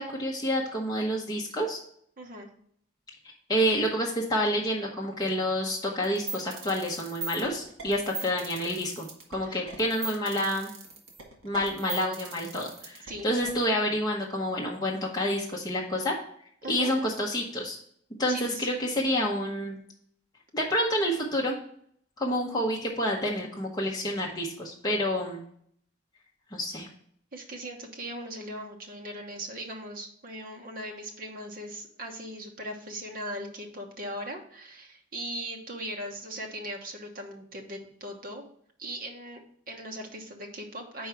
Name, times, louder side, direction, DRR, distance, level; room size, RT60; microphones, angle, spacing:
voice 1, 0.0-1.8 3.5-10.7 11.4-16.2 16.7-17.8 18.2-19.8 20.5-21.5 22.2-25.4 26.5-26.9, equal, 20° left, -2 dB, 0.8 m, -28 dB
voice 2, 2.2-2.5 9.5-9.7 13.1-13.3 16.6-16.9 18.3-18.7 27.3-38.4 38.8-41.1, right 1 dB, 45° right, 2 dB, 1.0 m, -39 dB
sound 1, 6.0-13.5, right 4 dB, 85° right, 1.6 m, -39 dB
4.6 x 4.6 x 5.8 m, 0.65 s
head